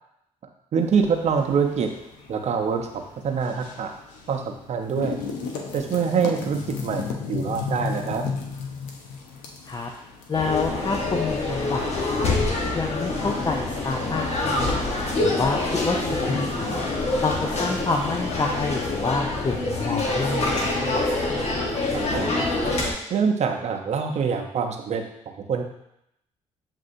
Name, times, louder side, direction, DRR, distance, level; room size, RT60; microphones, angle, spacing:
voice 1, 0.7-1.9 2.3-2.9 3.2-3.9 4.3-5.2 5.7-8.2 21.9-22.3 23.1-25.0 25.5-25.6, right 6 dB, 60° right, 4 dB, 0.7 m, -25 dB
sound 1, 0.8-14.0, left 5 dB, 90° left, 0.6 m, -36 dB
sound 2, 10.3-22.9, left 2 dB, 55° left, 1.0 m, -26 dB
voice 2, 10.3-12.3 12.7-14.7 15.2-16.7 17.2-21.0, left 4 dB, 30° left, 2 dB, 0.5 m, -28 dB
7.3 x 2.7 x 2.6 m, 0.81 s
supercardioid pair, 65°, 13 cm